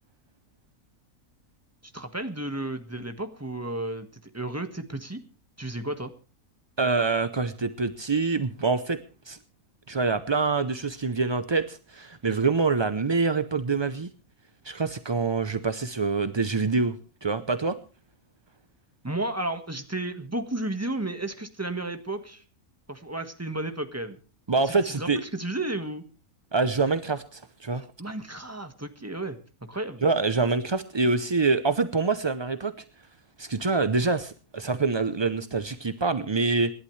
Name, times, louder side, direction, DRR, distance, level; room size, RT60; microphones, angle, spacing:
voice 1, 1.9-5.2 5.6-6.1 19.0-22.4 22.9-24.2 24.6-26.0 27.7-29.4 29.7-30.0, right 2 dB, 10° right, 7 dB, 1.5 m, -33 dB
voice 2, 6.8-9.0 9.3-9.4 9.9-14.1 14.6-16.9 17.2-17.8 24.5-25.2 26.5-27.8 30.0-32.7 33.4-36.7, right 4 dB, 35° right, 11 dB, 0.4 m, -25 dB
27.0 x 11.5 x 3.2 m, 0.36 s
omnidirectional pair, 1.6 m